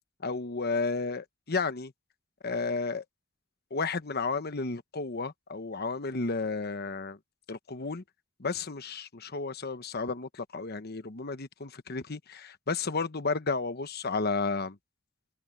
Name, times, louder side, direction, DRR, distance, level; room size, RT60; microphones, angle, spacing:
voice 1, 0.2-1.9 2.4-3.0 3.7-7.2 7.5-8.0 8.4-14.8, left 4 dB, 50° left, 1.1 m, -32 dB
head